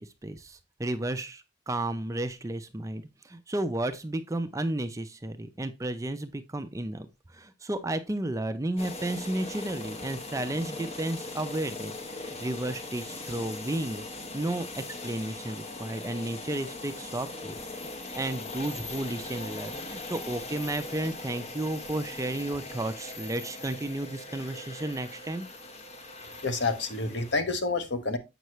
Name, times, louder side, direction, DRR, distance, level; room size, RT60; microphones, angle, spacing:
voice 1, 0.0-14.0 14.3-25.5, right 1 dB, 15° right, 0.5 m, -33 dB
sound 1, 8.8-27.3, left 2 dB, 35° left, 0.9 m, -40 dB
voice 2, 26.4-28.2, left 3 dB, 60° left, 1.0 m, -28 dB
7.9 x 5.5 x 3.1 m
head